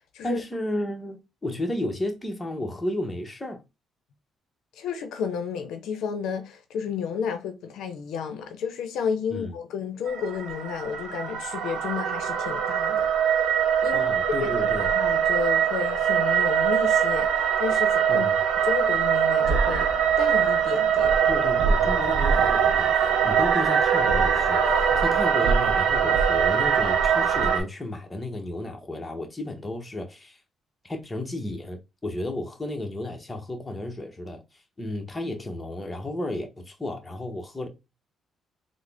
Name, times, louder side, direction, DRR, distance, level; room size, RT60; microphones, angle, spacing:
voice 1, 0.2-3.6 9.3-9.6 13.9-14.9 18.1-18.4 21.3-30.4 30.8-34.4 34.8-37.7, left 1 dB, 15° left, 0.9 m, -33 dB
voice 2, 4.8-13.1 13.4-14.1 14.4-19.9 20.2-21.1, left 7 dB, 80° left, 0.6 m, -32 dB
sound 1, 10.1-27.6, right 7 dB, 80° right, 0.7 m, -22 dB
3.7 x 2.0 x 3.3 m
cardioid pair, 95°, 0 cm